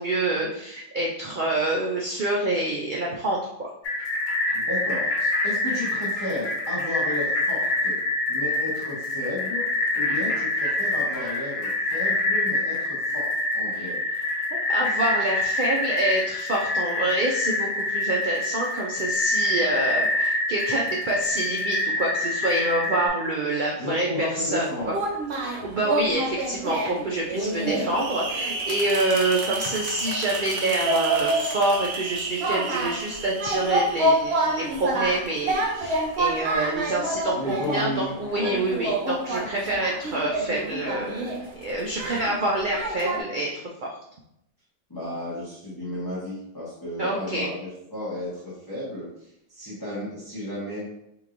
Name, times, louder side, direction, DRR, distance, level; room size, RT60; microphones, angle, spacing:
voice 1, 0.0-3.7 13.8-13.9 14.7-24.9 25.3-43.9 47.0-47.5, right 1 dB, 80° right, -2 dB, 0.4 m, -27 dB
sound 1, 3.8-23.1, left 2 dB, 60° left, 1.2 m, -26 dB
voice 2, 4.7-8.0 8.3-9.7 9.9-14.0 23.8-24.9 37.3-38.6 44.9-50.9, left 1 dB, 20° left, -10 dB, 0.9 m, -33 dB
sound 2, 24.8-43.2, right 2 dB, 55° right, 0.8 m, -28 dB
4.5 x 2.9 x 2.5 m, 0.79 s
omnidirectional pair, 1.5 m